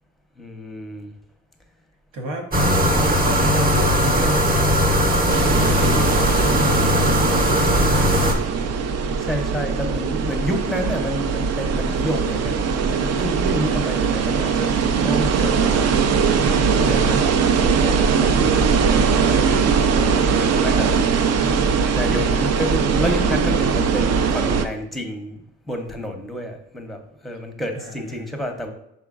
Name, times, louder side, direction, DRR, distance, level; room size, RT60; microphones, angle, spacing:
voice 1, 0.4-1.1 9.2-12.8 13.1-14.7 15.0-15.9 16.7-18.7 19.1-21.0 21.9-25.4 25.7-28.7, equal, ahead, 4 dB, 0.7 m, -29 dB
voice 2, 2.1-2.5 2.8-8.8 19.6-20.1 27.7-28.3, right 1 dB, 90° right, 2 dB, 0.9 m, -33 dB
sound 1, 2.5-8.3, equal, 30° right, 0.8 m, -18 dB
sound 2, 5.3-24.7, right 5 dB, 55° right, 0.5 m, -20 dB
4.9 x 3.8 x 2.4 m, 0.78 s
cardioid pair, 90°, 30 cm